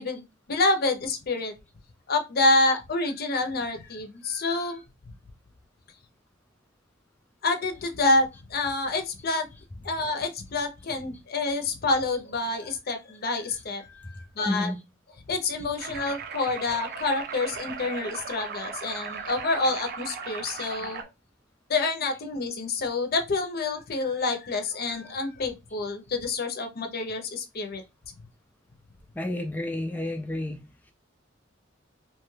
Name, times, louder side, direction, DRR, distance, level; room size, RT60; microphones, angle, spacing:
voice 1, 0.0-1.5 2.1-4.8 7.4-9.5 9.8-14.7 15.3-21.0 21.7-27.8, left 2 dB, 55° left, 0.6 m, -27 dB
voice 2, 14.5-14.8 25.1-25.2 29.2-30.6, left 1 dB, 10° left, 0.3 m, -30 dB
sound 1, 15.8-21.0, right 6 dB, 55° right, 0.5 m, -37 dB
2.9 x 2.3 x 3.1 m
head